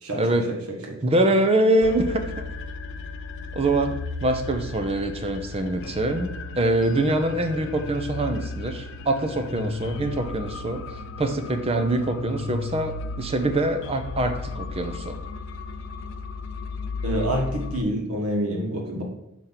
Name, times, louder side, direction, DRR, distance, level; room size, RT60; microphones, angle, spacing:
voice 1, 0.1-0.5 1.0-2.5 3.5-10.8 11.2-15.2, right 1 dB, 25° right, 6 dB, 0.6 m, -24 dB
sound 1, 1.8-17.8, left 3 dB, 55° left, 0.5 m, -35 dB
voice 2, 17.0-19.0, right 1 dB, 80° right, 0 dB, 1.7 m, -26 dB
6.7 x 3.0 x 5.7 m, 0.83 s
head